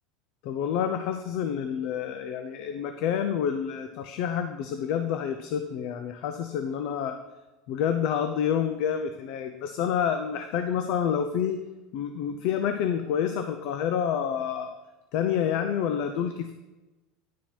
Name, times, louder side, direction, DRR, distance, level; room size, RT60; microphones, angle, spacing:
voice 1, 0.4-7.2 7.7-11.6 11.9-14.7 15.1-16.5, left 8 dB, 50° left, 8 dB, 0.5 m, -28 dB
10.5 x 4.4 x 6.0 m, 1.1 s
supercardioid pair, 165°, 0 cm